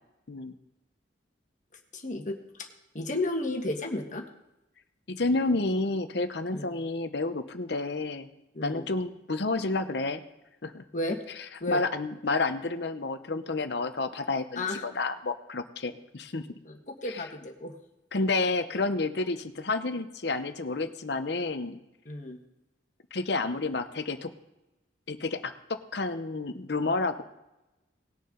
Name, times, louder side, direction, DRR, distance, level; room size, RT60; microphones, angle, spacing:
voice 1, 1.9-2.7 2.9-4.2 6.5-6.8 8.5-8.9 10.9-11.2 11.6-11.8 14.5-14.8 16.6-17.7 22.0-22.4, left 2 dB, 40° left, 2 dB, 1.5 m, -33 dB
voice 2, 5.1-8.3 8.6-10.2 10.6-10.8 11.7-16.5 17.1-17.2 18.1-21.8 23.1-24.3 25.1-27.2, left 3 dB, 60° left, 9 dB, 0.8 m, -30 dB
19.5 x 6.8 x 3.9 m, 0.95 s
head